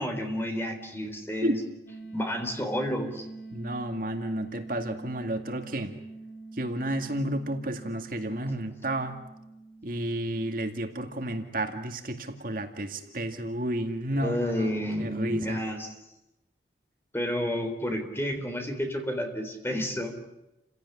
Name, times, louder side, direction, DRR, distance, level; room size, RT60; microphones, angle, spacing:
voice 1, 0.0-1.6 2.1-3.2 14.1-15.9 17.1-20.1, equal, 15° left, 5 dB, 3.8 m, -30 dB
sound 1, 1.9-12.6, right 3 dB, 60° left, 4.7 m, -46 dB
voice 2, 3.5-5.9 6.5-9.2 9.8-14.7 15.0-15.6, right 1 dB, 50° right, 6 dB, 2.2 m, -31 dB
29.5 x 17.0 x 9.9 m, 0.93 s
head